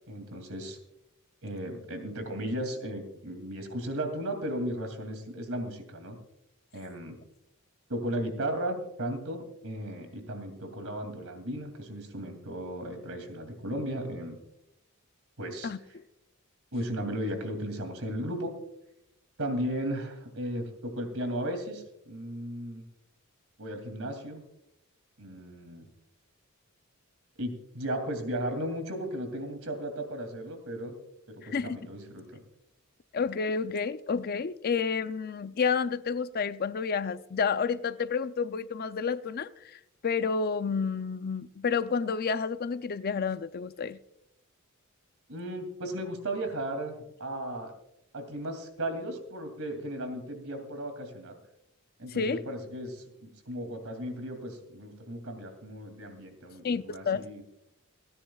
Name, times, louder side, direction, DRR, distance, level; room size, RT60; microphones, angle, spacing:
voice 1, 0.1-0.8 1.4-6.2 6.7-7.2 7.9-14.4 15.4-16.0 16.7-18.5 19.4-22.8 23.6-24.4 25.2-25.9 27.4-30.9 31.3-32.4 45.3-47.7 48.1-51.3 52.0-57.4, right 1 dB, 65° right, 2.7 m, -35 dB
voice 2, 31.4-31.8 33.1-44.0 52.1-52.4 56.6-57.3, left 5 dB, 45° left, 0.4 m, -30 dB
29.5 x 10.0 x 2.4 m
head